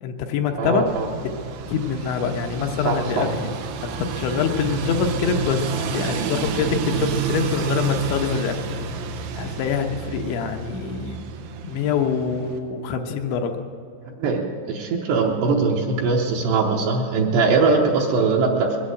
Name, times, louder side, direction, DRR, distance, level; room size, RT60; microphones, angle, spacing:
voice 1, 0.0-0.9 1.2-1.3 1.7-8.6 9.4-11.2 11.6-13.6, left 6 dB, 75° left, 5 dB, 3.1 m, -25 dB
voice 2, 0.6-1.1 2.8-3.3 14.1-18.8, right 4 dB, 75° right, -1 dB, 2.9 m, -21 dB
sound 1, 0.9-12.6, right 5 dB, 90° right, 3.5 m, -29 dB
21.0 x 8.5 x 7.7 m, 2.5 s
omnidirectional pair, 5.5 m